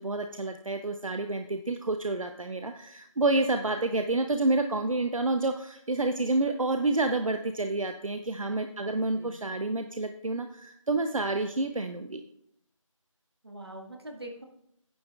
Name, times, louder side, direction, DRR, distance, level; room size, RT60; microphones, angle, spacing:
voice 1, 0.0-12.2, right 2 dB, 75° right, 7 dB, 0.7 m, -29 dB
voice 2, 8.7-9.4 13.4-14.4, right 1 dB, 50° right, 2 dB, 1.7 m, -43 dB
10.0 x 9.5 x 2.4 m, 0.75 s
figure-of-eight pair, 170°, 17 cm